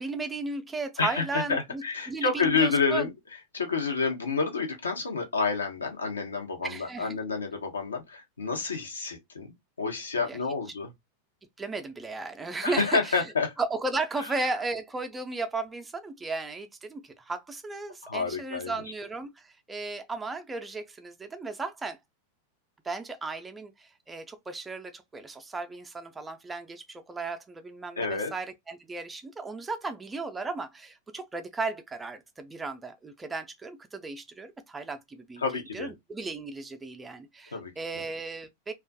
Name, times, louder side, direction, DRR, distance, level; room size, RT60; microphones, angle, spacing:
voice 1, 0.0-3.1 6.6-7.2 10.3-10.4 11.6-13.2 13.6-22.0 22.8-35.4 35.7-38.7, right 3 dB, 10° right, 0.4 m, -35 dB
voice 2, 1.0-3.1 3.5-9.5 9.8-10.9 12.6-13.5 14.2-14.3 18.0-18.8 28.0-28.3 35.4-35.9 37.5-37.7, left 4 dB, 75° left, 0.7 m, -29 dB
2.5 x 2.2 x 2.2 m
figure-of-eight pair, 90°, 0 cm